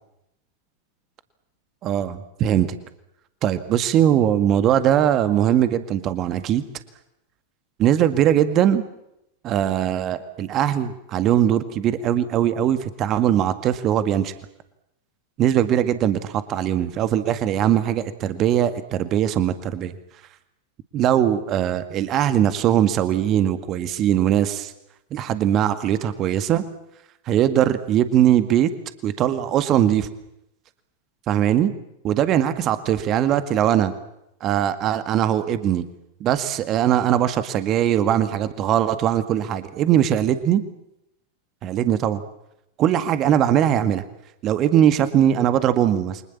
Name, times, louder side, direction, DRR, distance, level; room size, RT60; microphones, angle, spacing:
voice 1, 1.8-2.7 3.4-6.6 7.8-8.8 9.4-14.3 15.4-19.9 20.9-24.7 25.1-26.6 27.3-28.7 29.0-30.1 31.3-31.7 32.0-33.9 34.4-35.9 36.2-40.6 41.6-42.2 42.8-44.0 44.4-46.2, right 10 dB, 35° right, 11 dB, 1.9 m, -20 dB
29.5 x 24.5 x 7.3 m, 0.83 s
figure-of-eight pair, 90°, 0 cm